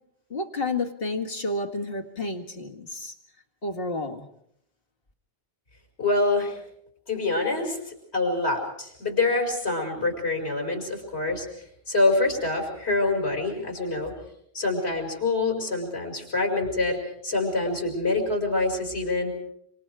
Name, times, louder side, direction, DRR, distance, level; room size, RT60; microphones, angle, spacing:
voice 1, 0.3-3.1 3.6-4.3, left 2 dB, 65° left, 3 dB, 2.2 m, -30 dB
voice 2, 6.0-6.6 7.1-11.5 11.9-14.1 14.5-19.3, left 2 dB, 85° left, 3 dB, 5.8 m, -26 dB
27.0 x 25.5 x 4.8 m, 0.71 s
omnidirectional pair, 1.1 m